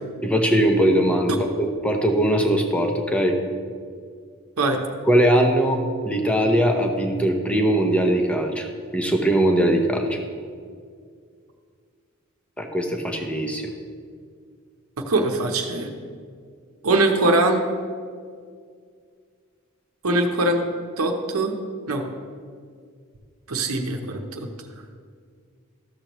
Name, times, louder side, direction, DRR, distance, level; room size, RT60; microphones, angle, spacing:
voice 1, 0.2-3.4 5.1-8.7 8.9-10.2 12.6-13.7, right 1 dB, 5° left, 3 dB, 0.7 m, -20 dB
voice 2, 15.1-15.9 16.8-17.6 20.0-20.6 21.0-21.6 21.9-22.1 23.5-24.5, right 2 dB, 90° right, 4 dB, 0.9 m, -22 dB
13.0 x 6.9 x 3.0 m, 2.1 s
head